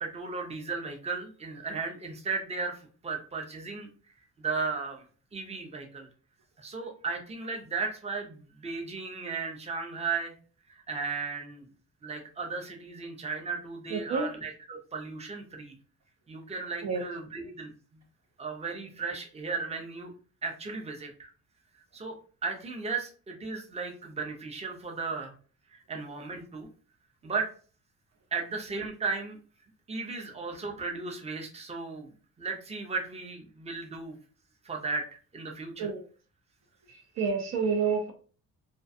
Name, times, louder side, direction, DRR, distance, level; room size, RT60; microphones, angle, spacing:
voice 1, 0.0-3.9 4.4-5.1 5.3-6.1 6.6-10.3 10.7-11.7 12.0-15.7 16.3-17.7 18.4-20.1 20.4-21.3 21.9-22.2 22.4-25.3 25.7-26.7 27.2-27.5 28.3-29.4 29.9-32.1 32.4-34.2 34.6-35.0 35.3-35.9, right 4 dB, 20° right, 1 dB, 0.6 m, -35 dB
voice 2, 13.9-14.3 16.8-17.0 35.8-36.0 36.9-38.1, right 5 dB, 65° right, 3 dB, 0.5 m, -29 dB
2.4 x 2.2 x 2.6 m, 0.40 s
cardioid pair, 90°, 30 cm